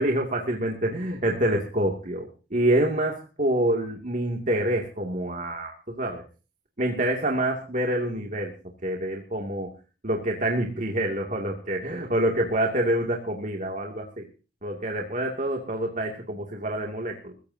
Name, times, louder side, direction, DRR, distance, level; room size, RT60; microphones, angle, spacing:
voice 1, 0.0-6.2 6.8-8.5 8.8-9.7 10.0-14.3 14.6-17.3, right 1 dB, 45° right, 1 dB, 2.5 m, -27 dB
22.5 x 16.0 x 2.8 m, 0.36 s
head